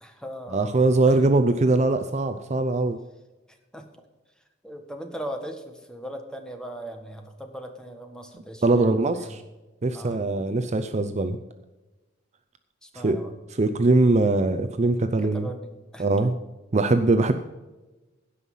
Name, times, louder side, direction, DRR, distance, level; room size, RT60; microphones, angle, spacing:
voice 1, 0.0-0.7 1.1-1.2 3.5-3.9 4.6-9.4 9.9-10.2 12.8-13.3 15.3-16.1, equal, 5° left, 5 dB, 1.4 m, -39 dB
voice 2, 0.5-3.0 8.6-9.4 9.8-11.4 12.9-13.2 13.6-15.5 16.0-16.3 16.7-17.3, right 2 dB, 35° right, 9 dB, 0.6 m, -21 dB
16.5 x 5.6 x 5.6 m, 1.1 s
head